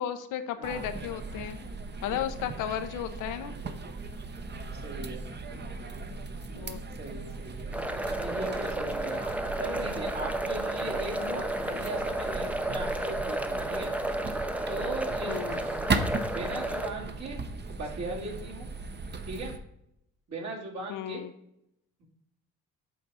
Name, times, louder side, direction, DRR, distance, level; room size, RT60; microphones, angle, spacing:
voice 1, 0.0-1.6 2.0-3.5 6.5-6.8 11.2-11.4 15.3-15.6 15.9-16.3 20.9-21.3, left 10 dB, 90° left, 9 dB, 0.8 m, -34 dB
sound 1, 0.6-19.6, right 3 dB, 35° right, 0.9 m, -37 dB
voice 2, 4.7-5.3 7.0-7.7 8.2-9.2 9.6-13.9 14.7-15.6 16.3-17.4 17.7-18.7 19.2-19.5 20.3-21.2 22.0-22.1, right 2 dB, 60° right, -3 dB, 2.6 m, -38 dB
sound 2, 7.7-16.9, right 1 dB, 5° right, 0.6 m, -32 dB
8.4 x 3.6 x 5.6 m, 0.78 s
cardioid pair, 90°, 30 cm